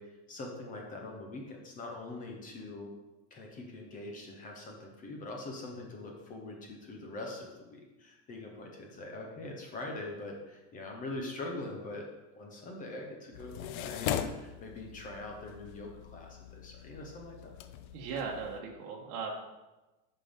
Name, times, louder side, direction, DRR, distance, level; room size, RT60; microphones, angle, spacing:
voice 1, 0.0-2.9 3.3-12.1 12.4-17.5, left 2 dB, 20° left, 1 dB, 0.7 m, -43 dB
sound 1, 13.3-18.6, left 9 dB, 70° left, 0.6 m, -40 dB
voice 2, 17.9-19.3, right 5 dB, 65° right, -2 dB, 1.3 m, -38 dB
9.0 x 5.5 x 3.6 m, 1.1 s
supercardioid pair, 175°, 45 cm